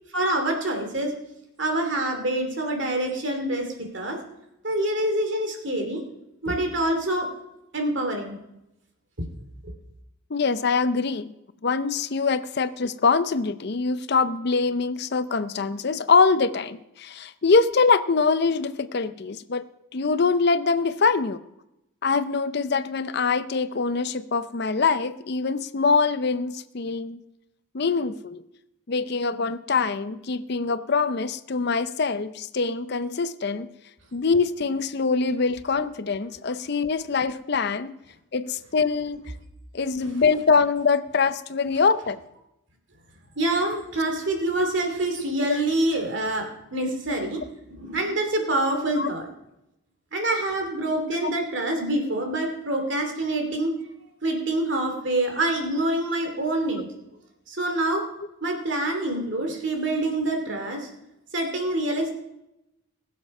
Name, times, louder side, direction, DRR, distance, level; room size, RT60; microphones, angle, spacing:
voice 1, 0.1-1.1 1.6-4.2 4.6-6.0 6.4-7.3 7.7-8.4 9.6-9.7 43.4-47.4 47.7-49.3 50.1-53.7 54.2-56.9 57.5-58.0 58.4-60.9 61.3-62.1, right 1 dB, 55° right, 4 dB, 2.7 m, -26 dB
voice 2, 10.3-11.3 11.6-19.6 19.9-21.4 22.0-27.2 27.7-28.4 28.9-33.7 34.1-37.9 38.3-39.3 39.7-42.2 45.4-45.6 49.0-49.1 51.2-51.4, left 4 dB, 50° left, 13 dB, 0.6 m, -24 dB
20.5 x 7.3 x 5.4 m, 0.88 s
head